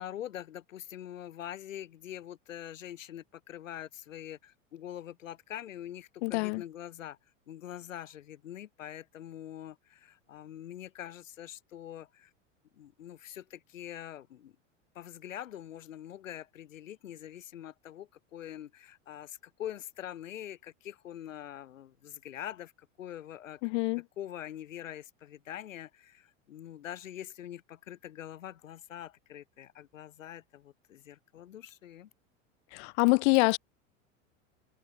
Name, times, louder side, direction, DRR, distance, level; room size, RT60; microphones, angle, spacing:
voice 1, 0.0-7.2 7.5-12.3 12.8-14.5 14.9-22.7 23.0-23.6 24.2-32.1, left 11 dB, 85° left, 3.1 m, -44 dB
voice 2, 6.2-6.6 23.6-24.0 32.7-33.6, left 30 dB, 60° left, 1.5 m, -25 dB
hypercardioid pair, 95°, 38 cm